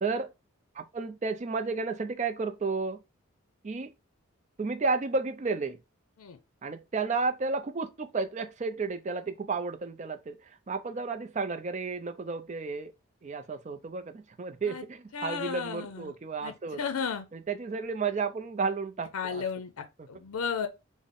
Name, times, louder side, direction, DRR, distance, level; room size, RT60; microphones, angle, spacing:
voice 1, 0.0-0.3 0.7-3.0 3.6-3.9 4.6-5.8 6.6-12.9 13.2-16.8 17.3-19.4 20.0-20.1, right 4 dB, 30° right, 0.3 m, -32 dB
voice 2, 15.1-16.1 16.4-17.3 19.1-20.7, left 6 dB, 80° left, 0.5 m, -34 dB
3.8 x 2.0 x 3.6 m
head